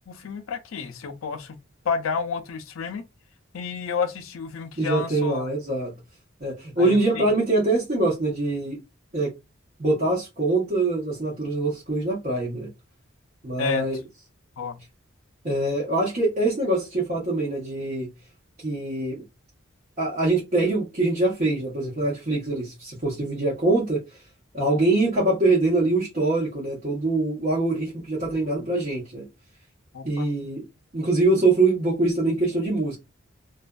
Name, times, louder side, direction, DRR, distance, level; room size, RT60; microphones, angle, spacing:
voice 1, 0.1-1.6 1.8-3.0 3.5-5.5 6.8-7.2 13.6-13.9 14.6-14.8 28.6-28.7 29.9-30.3, left 5 dB, 85° left, 0.5 m, -30 dB
voice 2, 4.8-5.9 6.4-8.8 9.1-9.3 9.8-12.7 13.4-14.0 15.4-18.1 18.6-19.2 20.0-24.0 24.5-29.2 30.0-30.6 30.9-33.0, right 2 dB, 40° right, 0.9 m, -24 dB
2.5 x 2.3 x 2.2 m
head